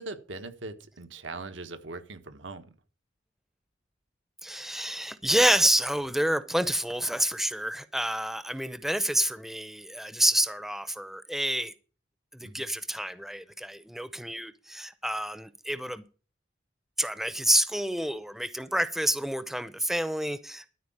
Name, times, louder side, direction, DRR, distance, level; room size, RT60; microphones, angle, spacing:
voice 1, 0.0-2.8 12.4-12.6, right 3 dB, 85° right, 1.4 m, -41 dB
voice 2, 4.4-11.7 12.3-16.0 17.0-20.7, right 1 dB, ahead, 0.6 m, -28 dB
13.0 x 4.7 x 8.7 m
head